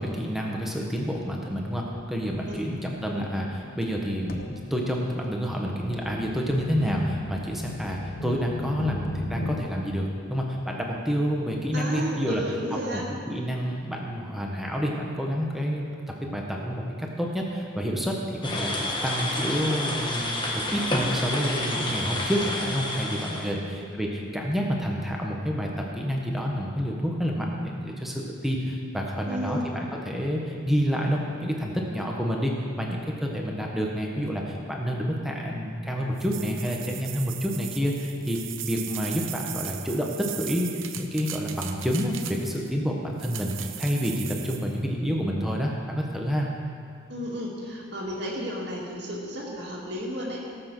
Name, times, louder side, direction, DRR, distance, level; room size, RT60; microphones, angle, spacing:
voice 1, 0.0-12.4 12.9-15.9 16.2-40.7 40.9-46.5, equal, ahead, -1 dB, 1.5 m, -28 dB
sound 1, 1.0-1.3 1.9-2.1 2.3-9.7, left 2 dB, 45° left, 0.9 m, -38 dB
voice 2, 11.7-13.1 23.6-23.9 29.3-29.7 47.1-50.5, equal, 55° right, -4 dB, 2.3 m, -33 dB
sound 2, 18.4-23.5, left 1 dB, 25° left, 1.4 m, -29 dB
sound 3, 36.2-42.7 43.2-44.7, right 11 dB, 80° right, 0.9 m, -38 dB
17.5 x 7.9 x 6.3 m, 2.4 s
head